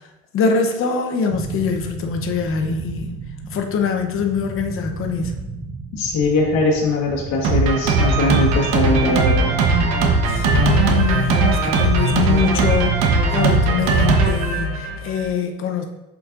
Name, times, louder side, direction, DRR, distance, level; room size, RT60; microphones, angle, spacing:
voice 1, 0.3-3.2 3.5-5.3 10.3-15.8, left 6 dB, 45° left, 4 dB, 0.9 m, -23 dB
sound 1, 1.3-14.2, right 3 dB, 15° right, 0.8 m, -33 dB
voice 2, 5.9-9.6, left 2 dB, 60° left, -2 dB, 1.3 m, -21 dB
Drum kit, 7.4-15.2, right 3 dB, 65° right, 1.1 m, -18 dB
7.1 x 5.2 x 2.5 m, 0.98 s
cardioid pair, 130°, 30 cm